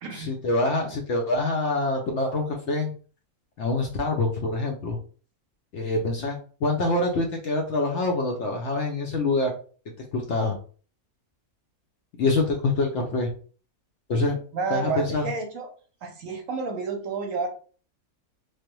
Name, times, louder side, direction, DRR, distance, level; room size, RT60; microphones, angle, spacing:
voice 1, 0.1-2.9 3.6-5.0 5.7-9.5 10.1-10.6 12.2-13.3 14.1-14.4 14.7-15.3, left 2 dB, 65° left, 1 dB, 0.8 m, -25 dB
voice 2, 14.5-15.7 16.0-17.5, right 5 dB, 70° right, 3 dB, 1.0 m, -30 dB
3.2 x 2.0 x 3.0 m, 0.41 s
omnidirectional pair, 1.6 m